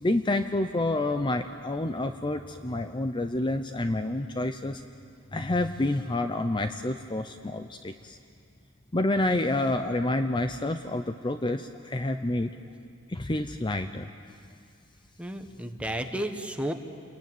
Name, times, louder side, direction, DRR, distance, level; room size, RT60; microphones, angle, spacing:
voice 1, 0.0-4.8 5.3-8.2 8.9-12.5 13.1-14.1, left 2 dB, 25° left, 8 dB, 0.7 m, -28 dB
voice 2, 15.2-16.7, right 1 dB, 5° right, 5 dB, 1.4 m, -32 dB
29.0 x 21.5 x 9.2 m, 2.5 s
head